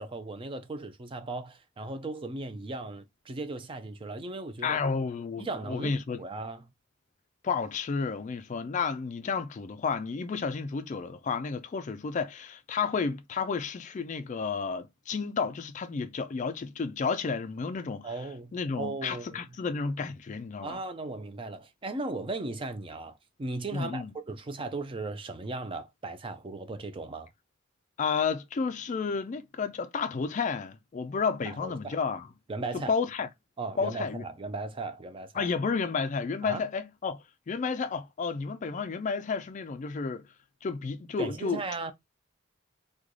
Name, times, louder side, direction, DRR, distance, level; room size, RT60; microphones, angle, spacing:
voice 1, 0.0-4.8 5.4-6.7 18.0-19.4 20.6-27.3 31.4-32.0 32.5-32.9 33.6-35.5 36.4-36.6 41.2-41.9, right 3 dB, 25° right, 0.4 m, -37 dB
voice 2, 4.6-6.2 7.4-18.1 18.5-20.8 23.7-24.1 28.0-32.3 32.7-33.3 33.8-34.2 35.3-40.2 40.6-41.6, left 5 dB, 35° left, 0.3 m, -31 dB
3.1 x 2.2 x 3.6 m
head